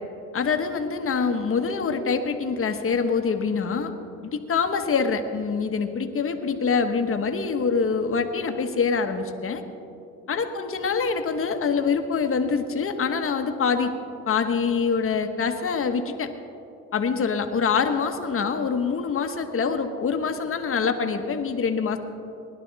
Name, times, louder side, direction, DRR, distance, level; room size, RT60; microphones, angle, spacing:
voice 1, 0.3-3.9 4.3-9.6 10.3-13.9 14.3-16.3 16.9-22.0, left 5 dB, 45° left, 6 dB, 1.2 m, -25 dB
19.5 x 11.5 x 4.1 m, 2.7 s
cardioid pair, 90°, 30 cm